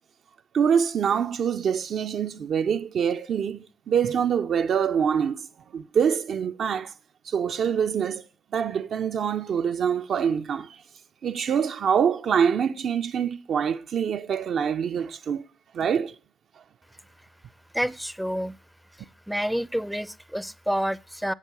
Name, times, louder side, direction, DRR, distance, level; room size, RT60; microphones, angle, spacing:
voice 1, 0.5-5.5 5.7-6.9 7.2-8.2 8.5-10.8 11.2-15.4 15.7-16.2, right 7 dB, 60° right, 0.4 m, -25 dB
voice 2, 17.7-18.6 19.3-21.3, equal, ahead, 0.4 m, -28 dB
7.5 x 7.3 x 8.2 m
cardioid pair, 90°, 0 cm